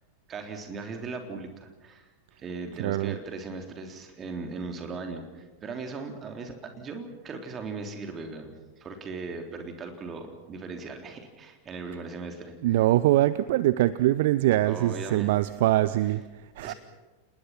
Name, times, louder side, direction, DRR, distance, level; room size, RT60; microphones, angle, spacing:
voice 1, 0.3-2.1 2.4-12.7 14.6-15.4 16.6-16.8, right 4 dB, 25° right, 4 dB, 3.6 m, -38 dB
voice 2, 2.8-3.2 12.6-16.7, right 15 dB, 55° right, 16 dB, 0.6 m, -23 dB
30.0 x 20.0 x 5.9 m, 1.2 s
figure-of-eight pair, 90°, 0 cm